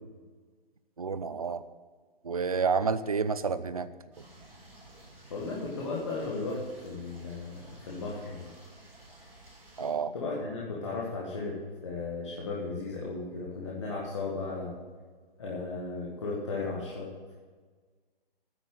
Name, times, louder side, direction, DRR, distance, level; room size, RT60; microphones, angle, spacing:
voice 1, 1.0-1.6 2.2-3.9 9.8-10.1, right 5 dB, 40° right, 13 dB, 0.5 m, -29 dB
sound 1, 4.1-9.9, right 1 dB, 5° right, 1.7 m, -53 dB
voice 2, 5.3-8.5 10.1-11.6 11.8-14.8 15.4-17.1, left 3 dB, 30° left, -4 dB, 1.7 m, -35 dB
10.0 x 8.2 x 7.8 m, 1.5 s
hypercardioid pair, 180°, 29 cm